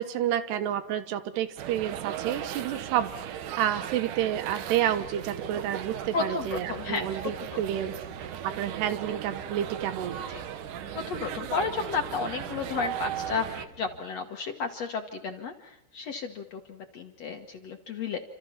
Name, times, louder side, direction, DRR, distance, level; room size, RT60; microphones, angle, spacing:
voice 1, 0.0-7.9 8.6-10.2, right 11 dB, 90° right, 11 dB, 3.4 m, -30 dB
sound 1, 1.6-13.7, right 9 dB, 65° right, 2.3 m, -37 dB
sound 2, 4.8-14.0, right 1 dB, 15° right, 6.3 m, -52 dB
voice 2, 6.1-7.1 7.4-7.6 10.3-10.4 11.1-18.2, left 5 dB, 60° left, 4 dB, 1.8 m, -33 dB
28.5 x 26.5 x 5.8 m, 0.75 s
omnidirectional pair, 4.7 m